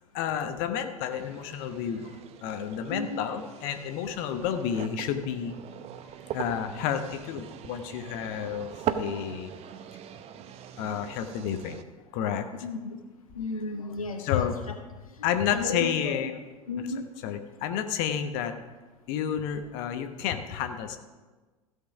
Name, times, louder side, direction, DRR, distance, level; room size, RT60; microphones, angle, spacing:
voice 1, 0.1-2.1 2.4-5.6 6.3-9.5 10.8-11.7 12.1-12.5 14.2-14.5 15.2-16.4 17.2-18.5 19.1-21.0, left 9 dB, 50° left, 8 dB, 1.0 m, -30 dB
sound 1, 1.1-11.8, right 9 dB, 35° right, 0.7 m, -40 dB
voice 2, 2.9-3.2 12.6-13.0 13.3-14.5 15.5-16.3 16.7-17.1, left 3 dB, 80° left, 5 dB, 0.9 m, -33 dB
15.5 x 5.7 x 6.0 m, 1.2 s
figure-of-eight pair, 75°, 18 cm